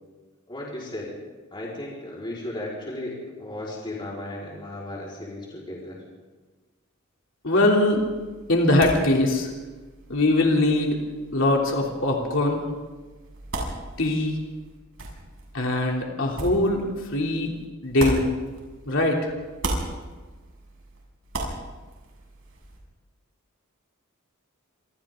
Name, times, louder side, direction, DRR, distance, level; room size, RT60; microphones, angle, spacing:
voice 1, 0.5-1.1 1.5-6.0, left 1 dB, 25° left, -5 dB, 4.6 m, -35 dB
voice 2, 7.4-8.0 8.5-9.5 10.1-11.0 11.3-12.6 14.0-14.4 15.5-16.8 17.1-17.5 17.8-18.3 18.9-19.3, left 2 dB, 65° left, -1 dB, 3.1 m, -21 dB
sound 1, 7.9-19.1 19.4-22.8, right 2 dB, 70° right, 6.7 m, -37 dB
28.5 x 27.0 x 3.8 m, 1.3 s
head